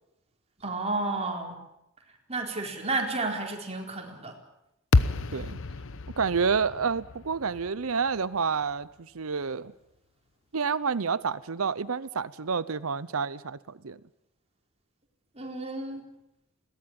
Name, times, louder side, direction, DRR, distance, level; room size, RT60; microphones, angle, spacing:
voice 1, 0.6-1.6 2.3-4.3 15.4-16.1, right 2 dB, 30° right, 1 dB, 4.3 m, -31 dB
sound 1, 4.9-9.2, left 3 dB, 65° left, 1.0 m, -30 dB
voice 2, 6.2-9.7 10.5-14.0, right 5 dB, 80° right, 17 dB, 0.8 m, -29 dB
21.5 x 18.0 x 8.9 m, 0.84 s
head